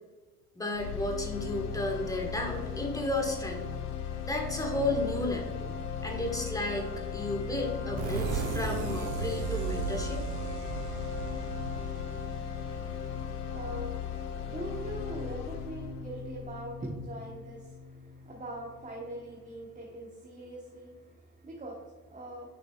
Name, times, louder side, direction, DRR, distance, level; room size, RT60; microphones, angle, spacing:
voice 1, 0.5-3.7 4.2-5.5 6.0-10.2, left 1 dB, 10° left, 1 dB, 1.4 m, -33 dB
sound 1, 0.7-18.8, left 8 dB, 85° left, 0.5 m, -38 dB
sound 2, 1.3-15.2, left 3 dB, 40° left, 1.2 m, -43 dB
sound 3, 8.0-13.5, right 7 dB, 60° right, 0.8 m, -36 dB
voice 2, 13.3-22.6, right 1 dB, 15° right, -2 dB, 1.1 m, -42 dB
6.5 x 6.4 x 2.3 m, 1.4 s
hypercardioid pair, 75°, 45 cm